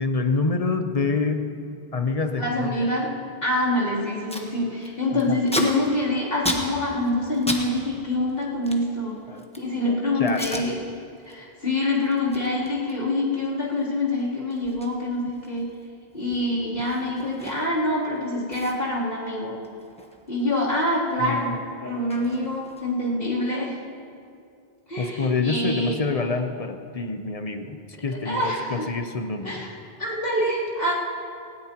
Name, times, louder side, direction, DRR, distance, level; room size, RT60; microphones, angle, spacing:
voice 1, 0.0-1.5 1.9-3.0 5.1-5.4 9.3-10.7 21.2-21.4 25.0-29.6, left 4 dB, 40° left, 6 dB, 0.8 m, -27 dB
voice 2, 2.4-3.1 3.4-9.2 9.6-10.7 11.3-15.7 16.1-19.6 20.3-21.5 21.8-23.8 24.9-26.0 28.2-28.9 29.4-29.7 30.0-30.9, left 1 dB, 65° left, -8 dB, 3.4 m, -25 dB
Packing tape duct tape, 3.7-3.8 4.0-4.5 4.8-7.7 7.9-9.7 10.3-10.7 11.1-11.3 11.7-17.9 18.2-18.3 18.5-20.9 21.1-23.1, equal, 5° left, 1.2 m, -35 dB
19.5 x 16.5 x 2.9 m, 2.4 s
omnidirectional pair, 1.0 m